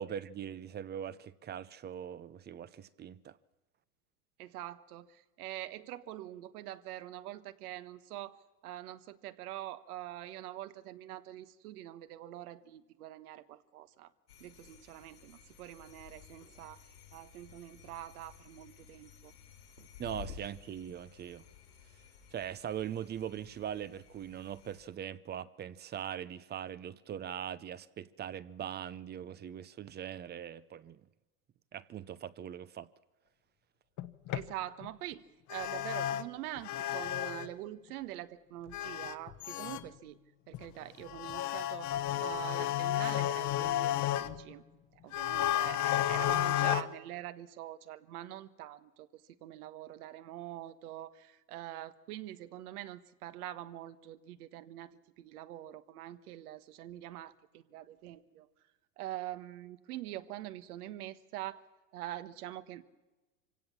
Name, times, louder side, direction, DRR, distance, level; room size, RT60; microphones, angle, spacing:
voice 1, 0.0-3.4 20.0-21.4 22.3-31.0 31.7-32.9, right 9 dB, 20° right, 0.6 m, -41 dB
voice 2, 4.4-14.1 14.4-16.8 17.1-19.3 19.8-19.9 34.3-35.2 35.5-40.2 40.5-41.9 42.2-44.6 45.0-58.5 59.0-61.6 61.9-62.8, right 13 dB, 70° right, 1.4 m, -44 dB
sound 1, 14.3-24.8, left 8 dB, 90° left, 6.1 m, -54 dB
sound 2, 34.0-34.4 34.8-34.9 35.5-36.2 36.6-37.5 38.7-39.8 40.5-40.6 41.0-44.5 45.1-46.8, left 13 dB, 40° left, 1.1 m, -32 dB
25.0 x 17.0 x 7.3 m
hypercardioid pair, 110°, 46 cm